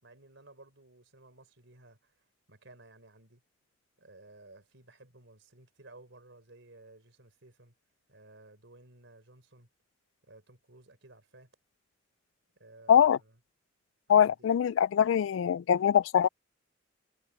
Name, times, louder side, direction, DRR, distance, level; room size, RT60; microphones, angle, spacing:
voice 1, 0.0-2.2 2.5-3.4 4.0-7.7 8.1-9.7 10.2-11.5 12.6-13.4 14.1-14.4, right 2 dB, 65° right, 4.4 m, -56 dB
voice 2, 12.9-13.2 14.1-16.3, left 8 dB, 75° left, 0.3 m, -23 dB
head